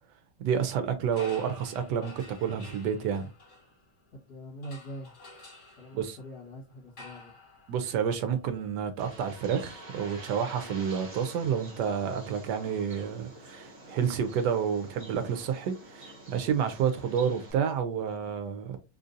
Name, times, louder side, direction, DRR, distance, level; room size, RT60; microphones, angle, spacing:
voice 1, 0.4-3.3 5.9-6.2 7.7-18.8, right 7 dB, 75° right, 1.1 m, -29 dB
sound 1, 1.1-4.2 4.6-13.6, left 2 dB, 50° left, 1.9 m, -53 dB
voice 2, 4.1-5.1 5.8-7.3, equal, 65° left, 2.0 m, -43 dB
Bird, 9.0-17.5, right 1 dB, 35° right, 0.8 m, -48 dB
3.7 x 2.6 x 2.5 m
omnidirectional pair, 2.0 m